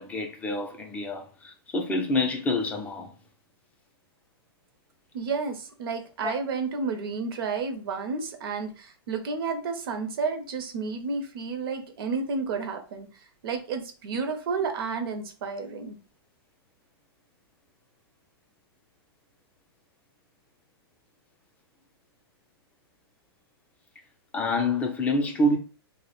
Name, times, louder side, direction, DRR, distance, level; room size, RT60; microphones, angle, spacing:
voice 1, 0.0-3.1 6.2-6.3 24.3-25.6, left 1 dB, 10° left, 0.3 m, -27 dB
voice 2, 5.1-13.1 13.4-16.0, right 4 dB, 65° right, 0.6 m, -31 dB
2.3 x 2.0 x 3.0 m
hypercardioid pair, 135°, 13 cm